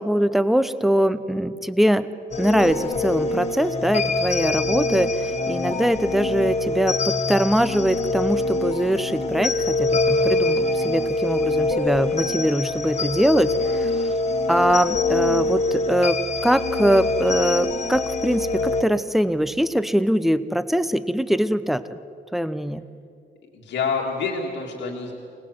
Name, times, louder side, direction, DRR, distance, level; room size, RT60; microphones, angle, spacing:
voice 1, 0.0-2.1 2.4-13.9 14.5-22.0 22.3-22.8, equal, ahead, 13 dB, 0.7 m, -22 dB
sound 1, 2.3-18.8, left 2 dB, 40° left, 1.5 m, -24 dB
voice 2, 23.5-25.1, left 5 dB, 85° left, -1 dB, 2.2 m, -28 dB
25.0 x 18.5 x 7.9 m, 2.6 s
cardioid pair, 135°, 18 cm